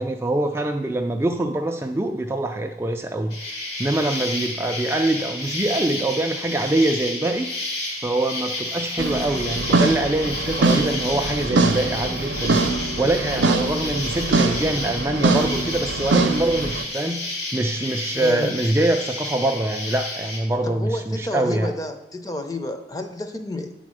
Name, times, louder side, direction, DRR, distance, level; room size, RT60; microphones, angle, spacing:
voice 1, 0.0-7.5 8.0-12.6 13.0-17.2 17.5-21.7, right 2 dB, 15° right, 4 dB, 0.3 m, -24 dB
Insect, 3.3-20.4, left 2 dB, 70° left, 2.3 m, -31 dB
sound 1, 9.0-16.8, right 3 dB, 85° right, 0.6 m, -23 dB
voice 2, 18.1-18.5 20.6-23.7, left 1 dB, 20° left, 6 dB, 0.6 m, -30 dB
9.0 x 4.2 x 6.2 m, 0.95 s
head